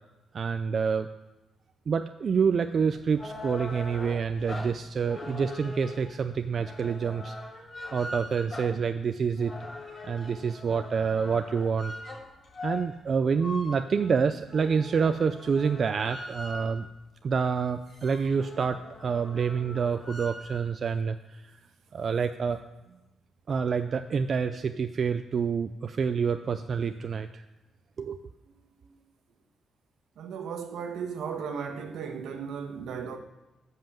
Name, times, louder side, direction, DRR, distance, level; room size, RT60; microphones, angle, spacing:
voice 1, 0.3-1.1 1.9-7.3 7.9-9.5 10.0-11.9 12.6-16.9 17.2-21.2 21.9-22.6 23.5-27.4 28.0-28.2, right 6 dB, 35° right, 0.4 m, -27 dB
sound 1, 2.8-16.9 17.4-17.5 17.7-20.6, left 2 dB, 45° left, 3.9 m, -42 dB
voice 2, 30.2-33.2, right 6 dB, 70° right, 1.4 m, -35 dB
13.0 x 5.6 x 7.3 m
cardioid pair, 175°, 0 cm